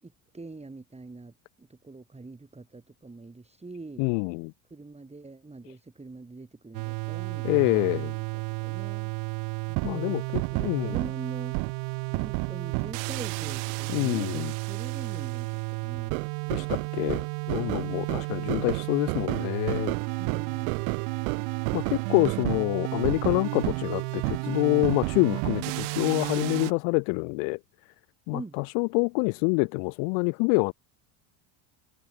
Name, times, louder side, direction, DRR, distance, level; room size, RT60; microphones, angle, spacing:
voice 1, 0.0-4.0 4.7-9.1 9.7-10.2 10.5-11.6 12.1-16.8 18.3-18.6 20.2-20.7 28.3-28.6, right 3 dB, 15° right, 5.4 m, -44 dB
voice 2, 4.0-4.5 7.4-8.1 9.8-11.0 13.9-14.5 16.5-20.0 21.7-27.6 28.3-30.7, left 40 dB or more, 80° left, 1.7 m, -26 dB
sound 1, 6.7-26.7, right 40 dB or more, 80° right, 1.5 m, -31 dB
supercardioid pair, 115°, 49 cm